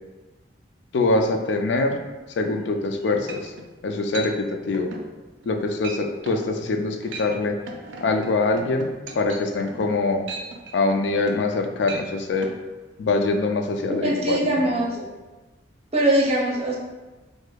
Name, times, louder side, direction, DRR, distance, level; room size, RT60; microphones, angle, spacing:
voice 1, 0.9-2.0 2.4-3.5 3.8-4.9 5.5-7.6 8.0-10.3 10.7-12.5 13.0-14.7, left 3 dB, 70° left, 4 dB, 0.4 m, -24 dB
sound 1, 2.8-2.9 3.3-3.7 4.1-4.3 4.7-5.1 5.4-5.6 5.8-6.0 6.3-6.5 6.9-7.3 7.7-11.6 11.8-12.1 12.4-12.6, right 3 dB, 85° right, 0.4 m, -37 dB
voice 2, 14.0-15.0 15.9-16.8, right 1 dB, 35° right, -3 dB, 0.6 m, -22 dB
4.8 x 2.1 x 2.2 m, 1.2 s
head